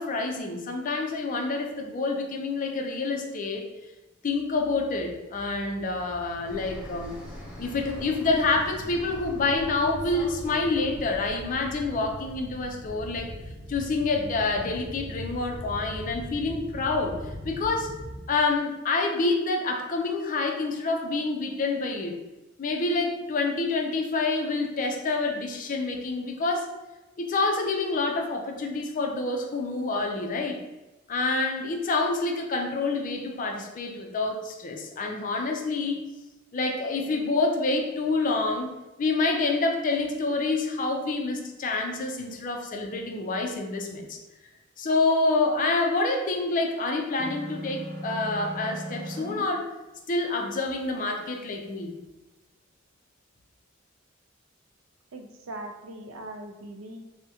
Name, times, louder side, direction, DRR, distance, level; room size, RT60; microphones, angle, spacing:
voice 1, 0.0-3.6 4.2-7.2 7.6-13.3 13.7-17.2 17.4-17.9 18.3-22.2 22.6-26.7 27.2-30.6 31.1-36.1 36.5-38.7 39.0-44.2 44.8-49.7 50.1-52.0, left 3 dB, 40° left, 2 dB, 0.4 m, -27 dB
sound 1, 4.3-18.2, equal, 20° left, 1.1 m, -41 dB
Fixed-wing aircraft airplane, 6.5-11.6, equal, 5° right, 0.6 m, -44 dB
sound 2, 47.2-49.4, right 1 dB, 45° right, 0.6 m, -37 dB
voice 2, 55.1-57.0, right 1 dB, 90° right, 4 dB, 0.4 m, -40 dB
3.4 x 2.1 x 2.8 m, 1.1 s
head